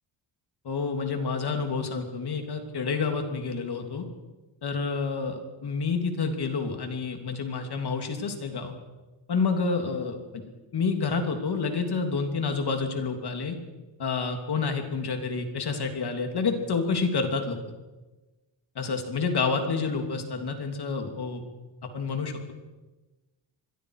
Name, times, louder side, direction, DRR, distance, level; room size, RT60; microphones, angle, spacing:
voice 1, 0.6-4.1 4.6-8.7 9.3-10.4 10.7-13.6 14.0-17.6 18.7-21.4 21.9-22.5, left 4 dB, 60° left, 4 dB, 3.3 m, -29 dB
26.5 x 21.5 x 5.0 m, 1.1 s
wide cardioid pair, 130°, 45 cm